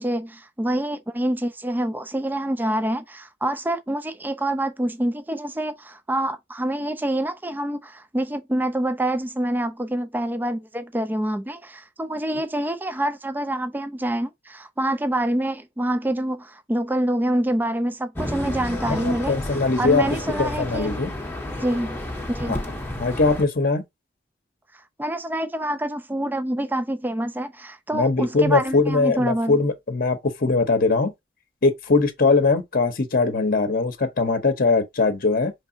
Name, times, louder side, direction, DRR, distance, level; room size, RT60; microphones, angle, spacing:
voice 1, 0.0-19.3 19.8-20.9 21.6-22.6 25.0-29.6, right 1 dB, 10° right, 0.4 m, -26 dB
sound 1, 18.2-23.4, left 1 dB, 10° left, 0.8 m, -31 dB
voice 2, 18.9-20.0 20.4-21.1 22.5-22.6 23.0-23.8 27.9-31.1 31.6-35.5, left 3 dB, 45° left, 0.8 m, -21 dB
4.7 x 3.3 x 2.7 m
head